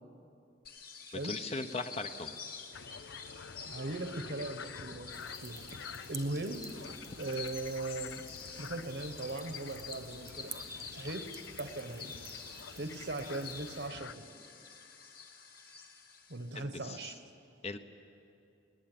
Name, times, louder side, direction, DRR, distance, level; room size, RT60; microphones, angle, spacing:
sound 1, 0.6-16.6, left 6 dB, 55° left, 1.8 m, -48 dB
voice 1, 1.2-2.4 16.5-17.1 17.6-17.8, left 3 dB, 35° left, 8 dB, 0.9 m, -39 dB
sound 2, 2.7-14.2, left 6 dB, 85° left, 0.5 m, -49 dB
voice 2, 3.7-5.6 6.1-6.6 7.2-8.2 8.6-10.6 10.9-12.2 12.8-14.3 16.3-17.2, right 2 dB, 65° right, 9 dB, 1.3 m, -39 dB
sound 3, 5.1-13.9, right 6 dB, 15° right, 1.0 m, -53 dB
20.0 x 19.5 x 9.3 m, 2.6 s
head